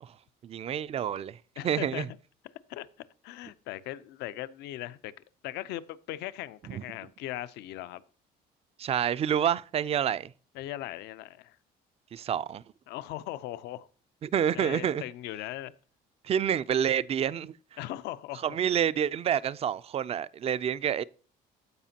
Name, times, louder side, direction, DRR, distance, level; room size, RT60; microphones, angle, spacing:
voice 1, 0.4-1.4 1.6-2.1 6.7-6.8 8.8-10.3 12.1-12.6 14.2-15.0 16.2-17.5 18.4-21.0, right 9 dB, 35° right, 0.4 m, -28 dB
voice 2, 1.6-2.1 2.7-2.9 3.2-5.1 5.4-8.0 10.5-11.6 12.9-13.9 14.5-15.7 17.8-18.4, left 14 dB, 85° left, 0.5 m, -39 dB
14.5 x 5.0 x 2.8 m
cardioid pair, 110°, 17 cm